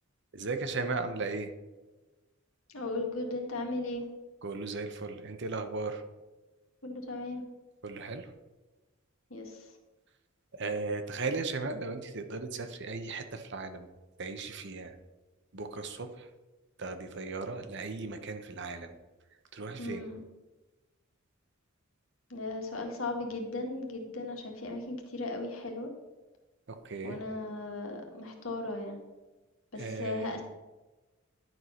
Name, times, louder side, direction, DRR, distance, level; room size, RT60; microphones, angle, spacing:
voice 1, 0.3-1.5 4.4-6.0 7.8-8.3 10.5-13.9 14.2-14.9 15.5-16.2 16.8-18.9 19.5-20.0 26.8-27.2 29.7-30.3, right 3 dB, 60° right, 8 dB, 0.9 m, -36 dB
voice 2, 2.7-4.0 6.8-7.4 9.3-9.5 19.8-20.2 22.3-25.9 27.0-29.0 29.7-30.4, left 2 dB, 75° left, 2 dB, 1.8 m, -36 dB
11.0 x 4.7 x 5.7 m, 1.2 s
head